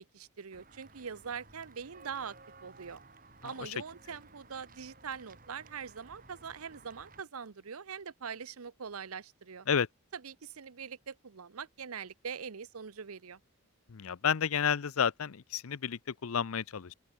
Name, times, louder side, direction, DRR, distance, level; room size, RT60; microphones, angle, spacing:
voice 1, 0.0-2.4 2.6-3.0 3.4-9.7 10.1-13.4, right 6 dB, 90° right, 0.8 m, -43 dB
Walk footsteps / Bell, 0.5-7.2, right 3 dB, 40° right, 4.3 m, -56 dB
voice 2, 13.9-16.9, left 7 dB, 80° left, 0.6 m, -31 dB
open air
head